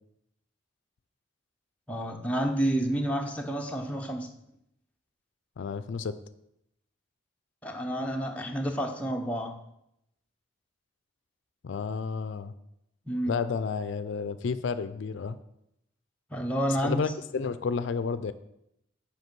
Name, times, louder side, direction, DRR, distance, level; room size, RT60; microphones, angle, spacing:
voice 1, 1.9-4.3 7.6-9.6 13.1-13.4 16.3-17.1, equal, 5° left, 2 dB, 0.7 m, -29 dB
voice 2, 5.6-6.2 11.6-12.5 13.3-15.4 16.8-18.3, left 5 dB, 70° left, 13 dB, 0.4 m, -31 dB
8.0 x 5.2 x 6.0 m, 0.80 s
head